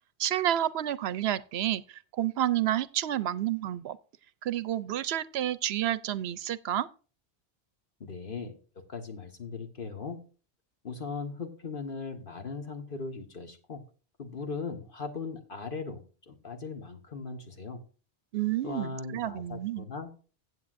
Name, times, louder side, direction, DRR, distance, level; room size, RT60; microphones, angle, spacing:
voice 1, 0.2-4.0 4.4-6.9 18.3-19.9, right 12 dB, 70° right, 0.8 m, -30 dB
voice 2, 8.0-8.6 8.9-10.2 10.8-13.8 14.2-17.8 18.6-20.2, left 4 dB, 55° left, 1.6 m, -39 dB
15.5 x 8.1 x 2.6 m
omnidirectional pair, 1.1 m